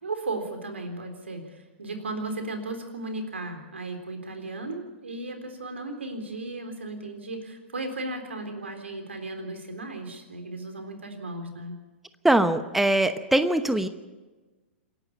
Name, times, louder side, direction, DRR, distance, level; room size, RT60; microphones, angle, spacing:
voice 1, 0.0-11.7, right 2 dB, 80° right, 5 dB, 3.8 m, -35 dB
voice 2, 12.2-13.9, right 1 dB, 5° right, 10 dB, 1.0 m, -22 dB
27.0 x 11.0 x 8.7 m, 1.2 s
figure-of-eight pair, 110°, 6 cm